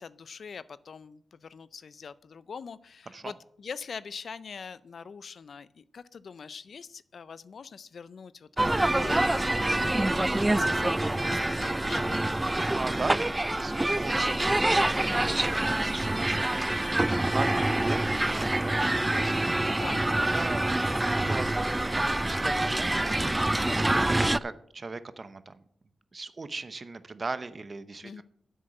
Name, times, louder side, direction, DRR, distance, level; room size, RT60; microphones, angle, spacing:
voice 1, 0.0-12.3 14.1-14.5 19.7-20.4 28.0-28.2, left 6 dB, 70° left, 17 dB, 0.4 m, -43 dB
sound 1, 8.6-24.4, right 1 dB, 20° right, 0.3 m, -26 dB
voice 2, 9.8-10.1 12.7-19.3 20.1-20.7 21.1-25.6 26.1-28.2, right 3 dB, 50° right, 13 dB, 0.8 m, -39 dB
7.9 x 6.4 x 7.6 m, 0.66 s
cardioid pair, 50°, 0 cm